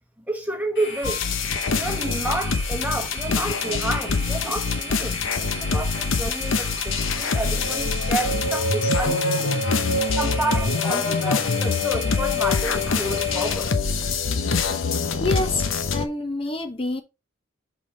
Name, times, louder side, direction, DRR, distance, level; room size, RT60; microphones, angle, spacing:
voice 1, 0.3-1.2 1.8-9.6 10.2-13.7, right 2 dB, 5° right, 1.1 m, -30 dB
sound 1, 0.7-13.5, equal, 60° left, 1.9 m, -36 dB
sound 2, 1.0-16.1, left 4 dB, 80° left, 0.8 m, -24 dB
voice 2, 15.2-17.0, left 2 dB, 25° left, 0.7 m, -27 dB
5.8 x 5.3 x 3.3 m
head